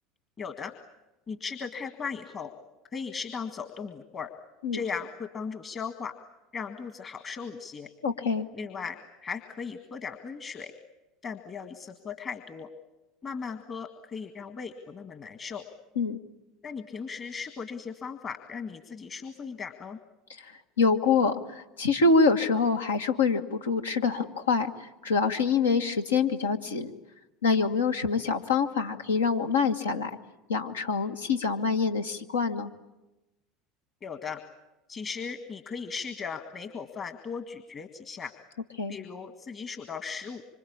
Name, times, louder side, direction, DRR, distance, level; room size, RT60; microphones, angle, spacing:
voice 1, 0.4-0.7 1.3-2.5 2.9-4.3 4.7-6.1 6.5-7.9 8.5-10.7 11.2-12.7 13.2-15.6 16.6-20.0 34.0-34.4 34.9-38.3 38.9-40.4, left 5 dB, 35° left, 8 dB, 1.8 m, -37 dB
voice 2, 8.0-8.4 16.0-16.2 20.8-26.9 27.4-30.1 30.5-32.7 38.8-38.9, left 4 dB, 85° left, 5 dB, 1.4 m, -25 dB
26.0 x 25.5 x 8.6 m, 1.0 s
hypercardioid pair, 75°, 0 cm